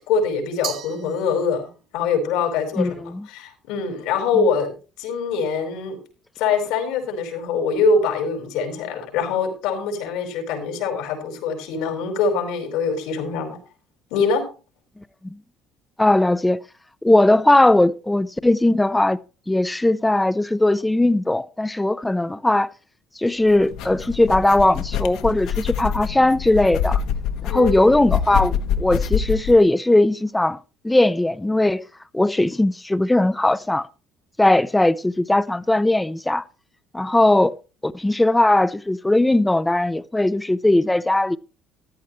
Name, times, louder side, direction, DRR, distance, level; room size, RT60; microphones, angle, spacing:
voice 1, 0.1-1.6 1.9-6.0 6.4-13.6 14.1-14.4 27.5-28.0, left 5 dB, 85° left, 4.8 m, -23 dB
Glass, 0.6-1.9, right 10 dB, 45° right, 1.5 m, -35 dB
voice 2, 2.8-3.3 4.3-4.5 15.2-15.4 16.0-16.6 17.0-19.2 19.5-22.7 23.2-27.0 27.4-30.6 30.8-31.8 32.1-33.9 34.4-36.4 36.9-37.5 37.8-41.4, left 1 dB, 5° left, 0.5 m, -19 dB
sound 1, 23.5-29.6, left 8 dB, 70° left, 1.2 m, -26 dB
14.5 x 11.5 x 3.1 m
cardioid pair, 160°, 0 cm